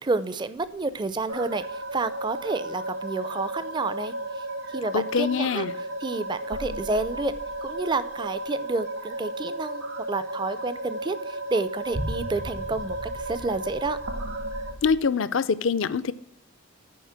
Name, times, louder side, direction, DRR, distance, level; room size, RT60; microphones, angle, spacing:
voice 1, 0.0-4.1 4.7-5.6 6.0-7.3 7.6-14.0, right 3 dB, 20° right, 14 dB, 0.4 m, -30 dB
sound 1, 0.6-1.9 2.3-3.1 6.1-8.1 9.0-10.0 10.6-10.7 11.4-15.0, right 1 dB, 65° right, 1.1 m, -39 dB
sound 2, 1.3-14.7, right 1 dB, 85° right, 1.2 m, -34 dB
voice 2, 4.9-5.7 14.8-16.1, left 5 dB, 60° left, 16 dB, 0.5 m, -24 dB
10.0 x 5.0 x 5.7 m, 0.76 s
head